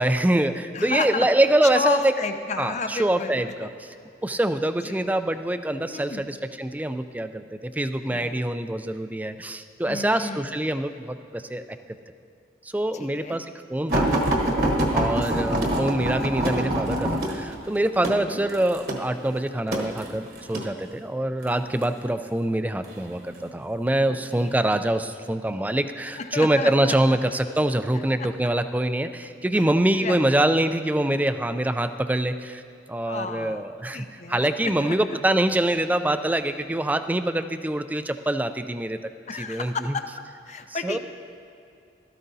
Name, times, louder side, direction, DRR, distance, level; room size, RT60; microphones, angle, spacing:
voice 1, 0.0-2.1 2.6-3.7 4.2-11.6 12.6-14.1 14.9-32.6 32.9-39.0 39.3-39.9 40.7-41.0, right 1 dB, 10° right, 9 dB, 0.3 m, -25 dB
voice 2, 0.7-1.3 1.7-3.7 4.8-5.1 5.9-6.2 8.1-8.4 9.9-10.5 12.9-13.4 18.0-18.4 24.1-24.6 26.2-27.2 28.2-28.3 29.5-29.7 30.0-30.3 33.1-34.9 39.3-40.1 40.4-41.0, left 4 dB, 40° left, 8 dB, 0.6 m, -32 dB
sound 1, 13.9-20.7 21.5-21.9 22.8-23.5 24.2-24.4 24.8-24.9, right 1 dB, 55° right, 1.3 m, -25 dB
16.5 x 13.0 x 2.7 m, 2.6 s
head